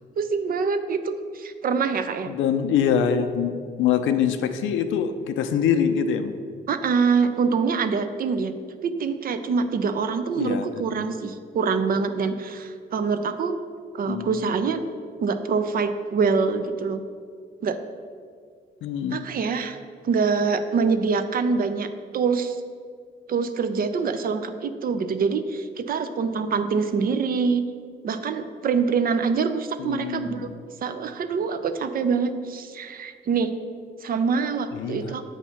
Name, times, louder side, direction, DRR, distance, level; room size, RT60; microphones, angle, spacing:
voice 1, 0.2-2.3 6.7-8.5 8.8-13.6 13.9-14.8 15.2-17.0 17.6-17.8 19.1-19.8 20.0-22.6 23.3-27.6 28.0-30.5 30.8-33.5 34.0-35.2, right 5 dB, 50° right, 9 dB, 0.4 m, -25 dB
voice 2, 2.3-6.4 10.3-11.1 14.1-14.4 18.8-19.3 29.8-30.6 34.7-35.1, left 8 dB, 75° left, 8 dB, 0.5 m, -25 dB
7.2 x 2.8 x 5.6 m, 2.1 s
cardioid pair, 90°, 20 cm